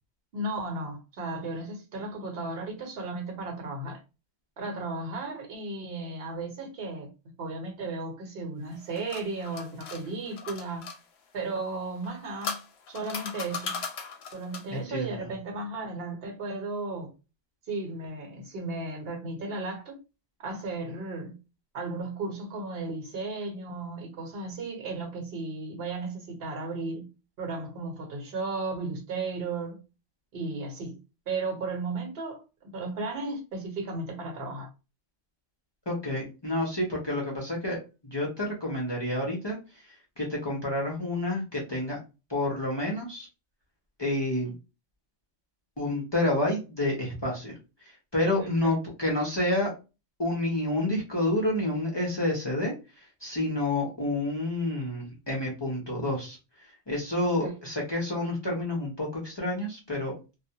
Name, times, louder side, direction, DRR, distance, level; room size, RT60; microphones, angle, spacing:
voice 1, 0.3-4.0 4.6-7.1 7.4-10.9 11.3-12.6 12.9-13.8 14.3-17.1 17.7-20.0 20.4-21.4 21.7-27.0 27.4-29.8 30.3-31.0 31.3-34.7 48.6-48.7 57.4-57.5, right 3 dB, 55° right, 1.0 m, -35 dB
sound 1, 8.7-11.0 12.0-14.8, left 5 dB, 65° left, 0.8 m, -38 dB
voice 2, 14.7-15.3 35.9-42.0 42.3-43.3 44.0-44.5 45.8-49.7 50.2-60.1, left 1 dB, 35° left, 0.4 m, -29 dB
2.1 x 2.1 x 2.7 m
omnidirectional pair, 1.3 m